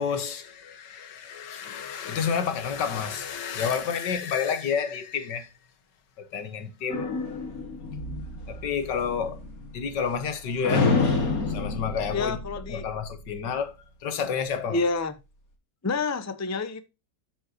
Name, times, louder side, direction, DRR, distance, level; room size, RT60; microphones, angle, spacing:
voice 1, 0.0-5.5 6.2-7.1 8.5-9.4 9.7-10.9 11.2-12.4 12.7-13.7 14.0-14.8, left 6 dB, 85° left, 1.9 m, -30 dB
sound 1, 6.9-10.3 10.6-13.3, left 3 dB, 55° left, 2.4 m, -29 dB
voice 2, 12.1-12.8 14.7-15.1 15.8-16.8, left 4 dB, 20° left, 0.4 m, -28 dB
12.5 x 5.6 x 2.9 m
omnidirectional pair, 1.8 m